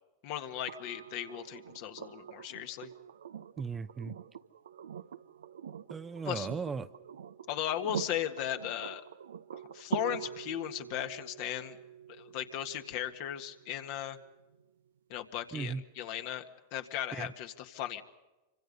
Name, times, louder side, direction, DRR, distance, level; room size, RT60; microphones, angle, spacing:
voice 1, 0.2-2.9 6.3-6.5 7.5-9.0 9.5-11.8 12.2-14.2 15.1-18.0, left 11 dB, 55° left, 6 dB, 1.8 m, -37 dB
sound 1, 0.7-14.6 16.4-16.5, right 9 dB, 80° right, 0.7 m, -44 dB
voice 2, 3.6-4.2 5.9-6.9 15.5-15.8 17.1-17.3, right 5 dB, 20° right, 11 dB, 0.8 m, -37 dB
26.0 x 25.5 x 5.5 m, 1.1 s
hypercardioid pair, 105°, 0 cm